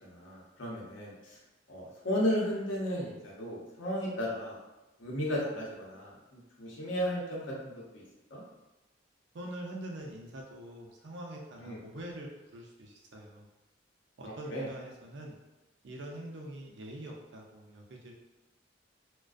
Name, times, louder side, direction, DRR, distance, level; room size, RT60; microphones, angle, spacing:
voice 1, 0.0-1.4 1.7-4.6 5.0-8.0 8.3-8.4 11.6-11.8 14.3-14.7, equal, 75° left, -4 dB, 0.7 m, -34 dB
voice 2, 9.3-13.5 14.2-15.3 15.8-18.1, right 1 dB, 65° right, 0 dB, 0.5 m, -44 dB
2.4 x 2.2 x 2.4 m, 1.0 s
head